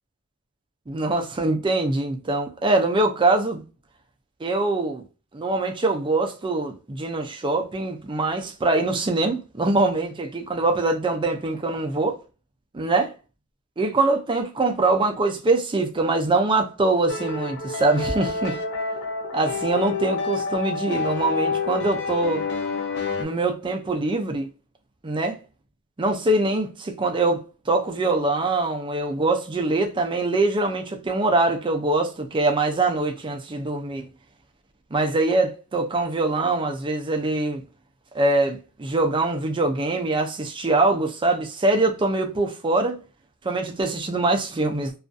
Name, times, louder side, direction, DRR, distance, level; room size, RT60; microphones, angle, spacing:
voice 1, 0.9-3.6 4.4-5.0 5.3-12.2 12.7-13.1 13.8-18.6 19.3-22.4 23.2-24.5 25.0-25.4 26.0-34.1 34.9-37.6 38.1-43.0 43.4-44.9, right 2 dB, 20° right, 0.4 m, -23 dB
sound 1, 17.1-23.3, left 4 dB, 50° left, 0.4 m, -28 dB
2.5 x 2.4 x 2.2 m
head